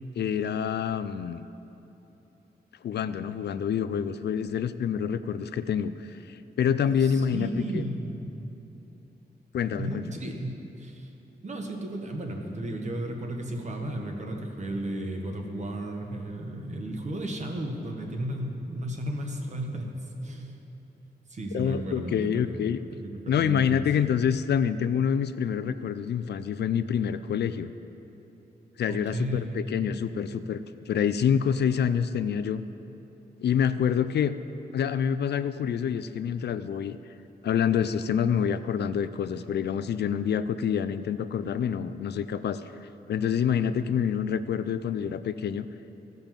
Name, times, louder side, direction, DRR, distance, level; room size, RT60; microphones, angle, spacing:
voice 1, 0.2-1.4 2.8-7.8 9.5-10.0 21.5-22.8 23.3-27.7 28.8-32.6 33.4-34.3 34.7-37.0 37.4-45.7, left 8 dB, 75° left, 12 dB, 0.4 m, -27 dB
voice 2, 7.0-8.3 9.8-11.1 11.4-20.6 21.3-22.6 22.9-23.9 28.9-29.6, right 1 dB, 40° right, 2 dB, 1.2 m, -34 dB
15.5 x 5.3 x 7.3 m, 3.0 s
wide cardioid pair, 145°, 18 cm